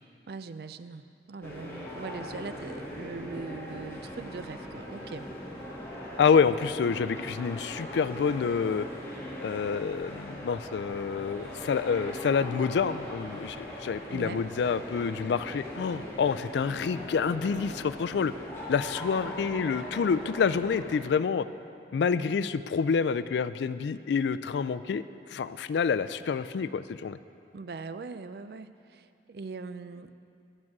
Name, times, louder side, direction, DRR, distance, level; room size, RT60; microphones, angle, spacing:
voice 1, 0.3-5.3 14.1-14.4 27.5-30.1, right 4 dB, 60° right, 11 dB, 0.4 m, -41 dB
sound 1, 1.4-20.9, equal, 15° left, 1.9 m, -40 dB
voice 2, 6.2-8.9 9.4-18.3 18.7-21.4 21.9-25.0 25.3-27.2, left 6 dB, 80° left, 14 dB, 0.3 m, -28 dB
11.0 x 8.7 x 6.0 m, 2.5 s
head